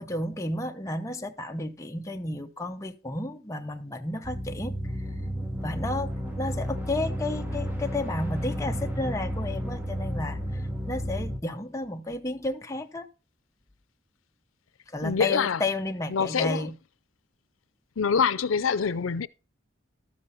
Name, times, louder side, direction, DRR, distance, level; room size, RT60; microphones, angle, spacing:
voice 1, 0.0-5.0 5.6-6.1 6.4-13.1 14.9-16.8, left 2 dB, 15° left, 0.8 m, -32 dB
sound 1, 4.2-11.4, equal, 10° right, 1.0 m, -32 dB
voice 2, 15.0-15.6 16.1-16.7 18.0-19.3, left 6 dB, 90° left, 0.5 m, -25 dB
13.0 x 7.1 x 4.1 m
head